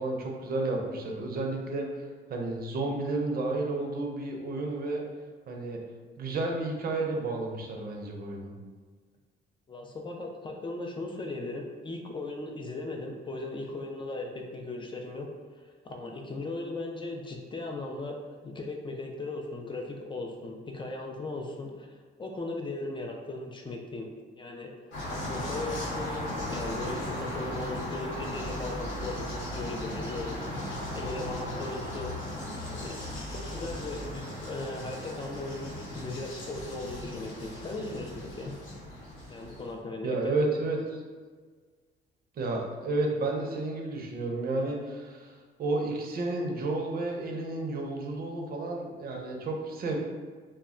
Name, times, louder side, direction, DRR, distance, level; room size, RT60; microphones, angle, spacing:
voice 1, 0.0-5.0 5.5-5.8 6.2-8.5 40.0-41.0 42.4-50.0, right 2 dB, 50° right, 1 dB, 0.5 m, -31 dB
voice 2, 9.7-15.3 15.6-18.2 18.4-24.1 24.3-24.7 25.1-30.5 30.9-32.1 32.7-33.0 33.3-38.5 39.3-40.4, left 2 dB, 25° left, 2 dB, 0.4 m, -38 dB
sound 1, 24.9-39.7, left 1 dB, 80° left, 0.9 m, -37 dB
2.2 x 2.1 x 3.5 m, 1.5 s
cardioid pair, 90°, 20 cm